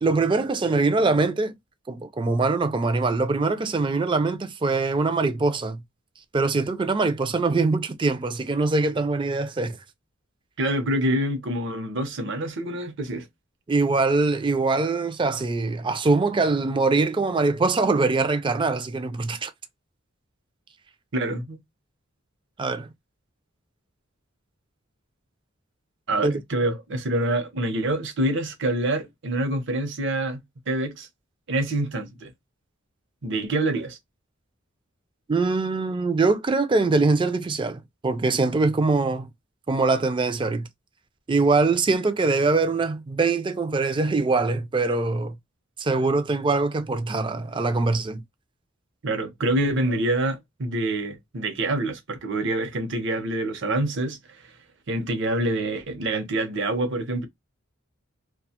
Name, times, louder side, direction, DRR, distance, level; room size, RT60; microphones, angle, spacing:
voice 1, 0.0-1.5 1.9-5.8 6.3-9.8 13.7-19.5 22.6-22.9 26.2-26.4 35.3-39.3 39.7-40.7 41.3-45.3 45.8-48.2, right 3 dB, 25° right, 0.4 m, -23 dB
voice 2, 10.6-13.3 21.1-21.6 26.1-31.1 31.5-32.3 33.2-34.0 49.0-54.2 54.4-54.5 54.9-57.3, right 1 dB, 65° right, 0.7 m, -26 dB
2.4 x 2.2 x 2.7 m
head